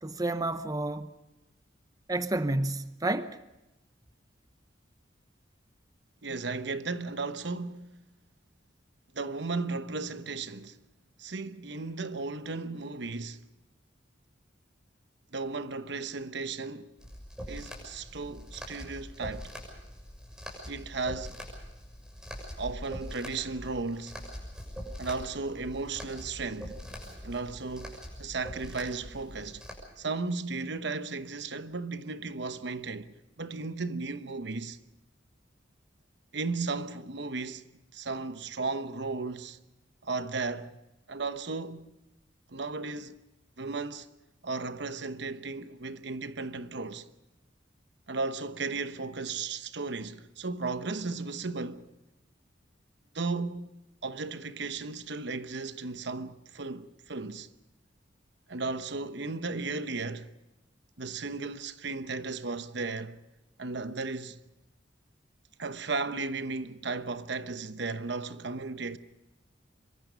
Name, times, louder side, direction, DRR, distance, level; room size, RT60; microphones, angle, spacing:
voice 1, 0.0-1.1 2.1-3.4, right 2 dB, 20° right, 0.8 m, -30 dB
voice 2, 6.2-8.0 9.1-10.8 11.2-13.5 15.3-17.0 17.5-19.5 20.7-21.4 22.6-24.2 25.0-26.8 27.2-29.6 30.0-34.8 36.3-37.6 37.9-39.6 40.0-40.7 41.1-41.9 42.5-43.2 43.6-44.1 44.4-47.1 48.1-51.8 53.1-53.7 54.0-57.5 58.5-60.3 61.0-63.2 63.6-64.4 65.6-69.0, right 3 dB, 65° right, 1.1 m, -35 dB
sound 1, 17.0-29.7, equal, 5° right, 6.7 m, -43 dB
25.5 x 23.5 x 5.2 m
head